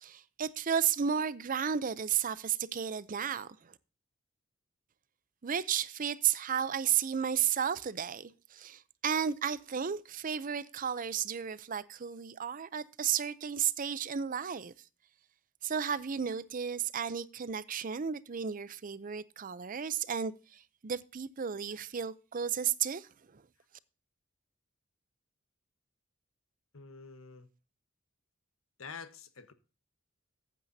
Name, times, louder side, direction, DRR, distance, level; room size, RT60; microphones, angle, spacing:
voice 1, 0.0-3.5 5.4-14.7 15.6-23.1, right 8 dB, 40° right, 0.5 m, -33 dB
voice 2, 26.7-27.5 28.8-29.5, left 5 dB, 80° left, 1.2 m, -47 dB
14.5 x 9.0 x 2.7 m
head